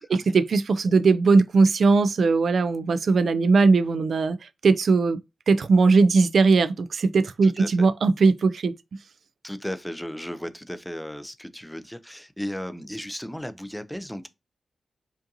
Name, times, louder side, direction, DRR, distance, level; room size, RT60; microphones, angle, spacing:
voice 1, 0.1-4.4 4.6-5.2 5.5-8.7, right 4 dB, 65° right, 0.3 m, -19 dB
voice 2, 7.4-7.9 9.4-14.3, equal, 5° left, 0.4 m, -35 dB
5.1 x 2.5 x 2.6 m
wide cardioid pair, 135°, 0 cm